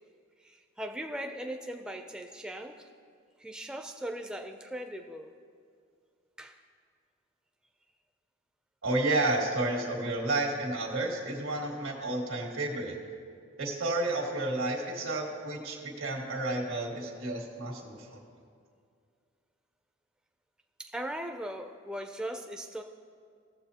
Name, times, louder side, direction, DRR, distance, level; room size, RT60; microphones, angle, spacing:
voice 1, 0.4-2.9 3.4-5.3 6.4-6.6 20.8-22.8, right 1 dB, 5° right, 4 dB, 0.3 m, -39 dB
voice 2, 8.8-13.0 13.6-18.2, right 2 dB, 85° right, 1 dB, 1.8 m, -31 dB
17.5 x 7.3 x 2.8 m, 2.2 s
head